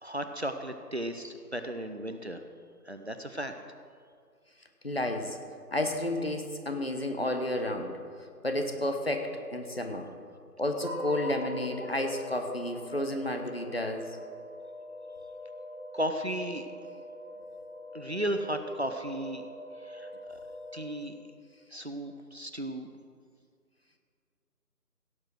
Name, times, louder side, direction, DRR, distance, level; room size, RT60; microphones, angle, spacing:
voice 1, 0.0-2.4 2.9-3.5 15.9-16.7 17.9-19.4 19.8-20.4 20.7-21.2 21.7-22.9, right 1 dB, 45° right, 7 dB, 0.7 m, -35 dB
voice 2, 4.8-5.4 5.7-8.0 8.4-10.1 10.6-14.2, left 1 dB, 40° left, 5 dB, 1.1 m, -31 dB
sound 1, 10.8-21.3, equal, 15° left, 1.8 m, -43 dB
17.0 x 7.3 x 6.3 m, 2.1 s
figure-of-eight pair, 170°, 48 cm